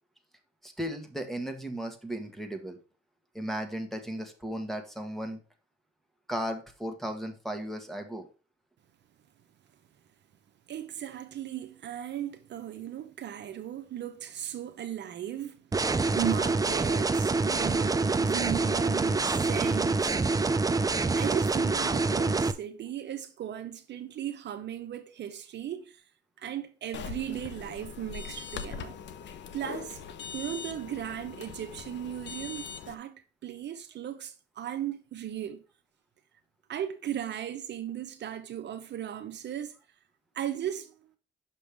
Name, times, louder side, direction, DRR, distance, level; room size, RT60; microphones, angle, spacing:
voice 1, 0.6-2.8 3.3-5.4 6.3-8.3, equal, ahead, 1.4 m, -35 dB
voice 2, 10.7-15.6 15.9-20.2 21.1-26.0 26.4-29.0 29.5-30.0 30.3-35.6 36.7-39.8 40.3-40.9, right 10 dB, 60° right, 0.8 m, -37 dB
sound 1, 15.7-22.5, right 3 dB, 20° right, 0.5 m, -26 dB
sound 2, 26.9-33.0, left 6 dB, 65° left, 0.8 m, -41 dB
6.3 x 5.5 x 3.4 m
cardioid pair, 90°, 20 cm